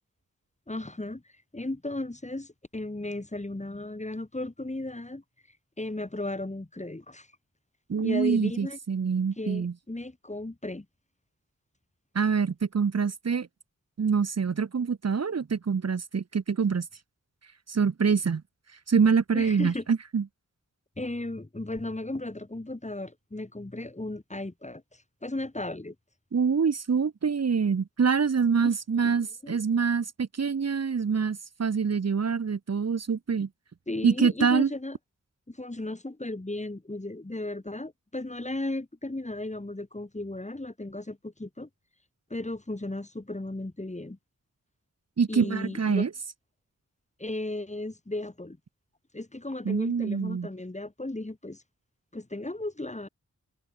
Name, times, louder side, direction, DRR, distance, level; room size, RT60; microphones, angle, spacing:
voice 1, 0.7-1.2 1.5-5.2 5.8-7.3 8.0-8.8 9.4-10.8 19.3-19.8 21.0-24.8 25.2-25.9 28.6-29.6 33.9-35.0 35.5-41.7 42.3-44.2 45.3-46.1 47.2-48.6 49.1-51.6 52.1-53.1, left 2 dB, 25° left, 3.2 m, -35 dB
voice 2, 7.9-9.7 12.1-13.5 14.0-16.9 17.7-18.4 18.9-20.2 26.3-33.5 34.0-34.7 45.2-46.1 49.6-50.5, right 6 dB, 60° right, 1.0 m, -25 dB
wide cardioid pair, 65°, 30 cm